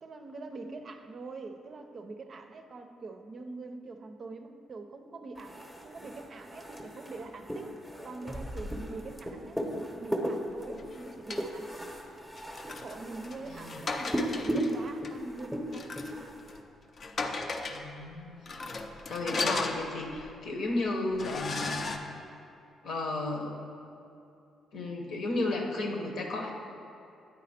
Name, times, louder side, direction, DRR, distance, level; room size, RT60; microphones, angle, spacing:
voice 1, 0.0-7.7 8.0-11.9 12.7-16.0, right 3 dB, 45° right, 6 dB, 0.5 m, -44 dB
sound 1, 5.4-16.6, equal, 10° left, 0.8 m, -36 dB
sound 2, 10.7-11.5 12.4-14.7 15.0-15.1 15.7-16.2 16.5-16.6 17.0-17.9 18.5-20.3 20.7-20.8 21.2-22.0, left 3 dB, 45° left, 0.5 m, -36 dB
voice 2, 13.5-13.8 17.7-18.4 19.1-21.8 22.8-23.6 24.7-26.5, left 2 dB, 70° left, 1 dB, 1.0 m, -33 dB
9.2 x 4.1 x 4.2 m, 2.7 s
cardioid pair, 90°, 0 cm